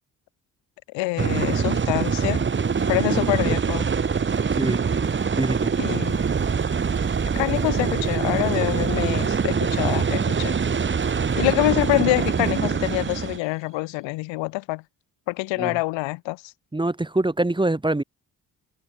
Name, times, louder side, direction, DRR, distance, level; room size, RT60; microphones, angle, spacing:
voice 1, 0.9-2.4 2.9-3.9 5.8-6.2 7.3-10.5 11.3-14.8 15.3-16.5, left 22 dB, 85° left, 0.8 m, -26 dB
sound 1, 1.2-13.4, right 6 dB, 25° right, 0.8 m, -24 dB
sound 2, 2.2-14.0, right 11 dB, 75° right, 4.9 m, -48 dB
voice 2, 3.1-3.6 4.5-4.8 5.4-5.7 15.6-15.8 16.7-18.0, right 2 dB, 10° right, 1.1 m, -25 dB
hypercardioid pair, 45°, 44 cm